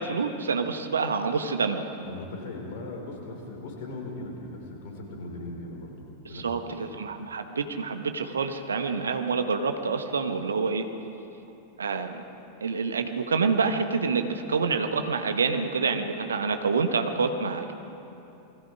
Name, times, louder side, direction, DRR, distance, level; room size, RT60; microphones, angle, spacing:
voice 1, 0.0-1.8 6.3-10.9 11.8-12.2 12.6-17.7, right 4 dB, 70° right, 7 dB, 1.4 m, -27 dB
voice 2, 2.0-5.9 6.2-6.4 6.8-6.9, left 2 dB, 50° left, 1 dB, 4.7 m, -38 dB
28.0 x 20.0 x 4.9 m, 2.9 s
figure-of-eight pair, 90°, 0 cm